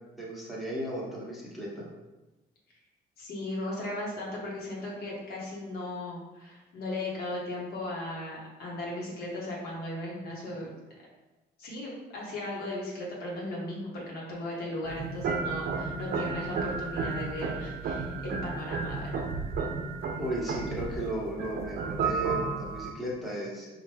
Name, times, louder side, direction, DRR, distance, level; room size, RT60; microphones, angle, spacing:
voice 1, 0.2-1.9 20.2-23.7, right 1 dB, ahead, -5 dB, 1.1 m, -35 dB
voice 2, 3.2-10.7 11.6-19.1, left 1 dB, 65° left, -4 dB, 1.2 m, -37 dB
sound 1, 14.8-22.9, right 4 dB, 60° right, 0.5 m, -33 dB
4.3 x 2.5 x 3.3 m, 1.1 s
cardioid pair, 110°, 17 cm